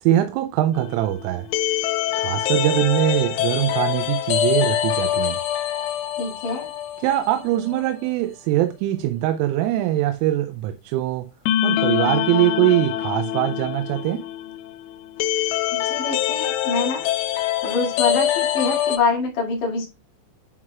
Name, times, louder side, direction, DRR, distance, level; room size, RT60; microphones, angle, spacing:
voice 1, 0.0-1.5 2.2-5.4 7.0-11.3 11.6-14.2, right 14 dB, 85° right, 3.0 m, -22 dB
sound 1, 0.7-7.5 7.7-7.8 11.5-19.0, left 12 dB, 90° left, 3.3 m, -24 dB
voice 2, 6.2-6.7 15.7-17.0 17.6-19.9, left 4 dB, 50° left, 2.9 m, -25 dB
11.0 x 4.6 x 2.3 m
omnidirectional pair, 5.9 m